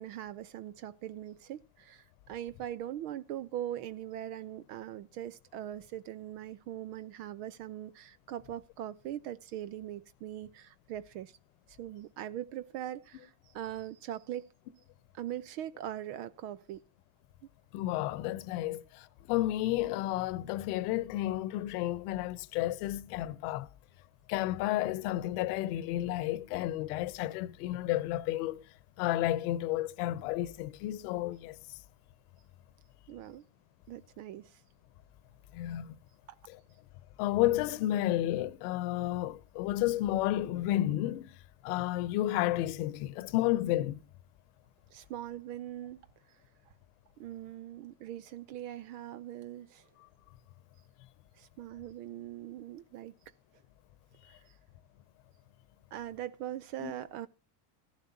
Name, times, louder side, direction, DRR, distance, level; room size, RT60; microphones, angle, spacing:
voice 1, 0.0-11.4 11.7-14.5 15.1-16.8 33.1-33.5 33.9-34.6 44.9-46.0 47.2-49.9 51.3-53.1 54.3-54.5 55.9-57.3, right 12 dB, 75° right, 0.7 m, -41 dB
voice 2, 17.7-23.7 24.3-28.6 29.0-31.8 35.5-36.0 37.2-41.4 41.6-44.0 56.8-56.9, left 15 dB, 75° left, 1.0 m, -31 dB
14.5 x 11.5 x 2.8 m
supercardioid pair, 85°, 46 cm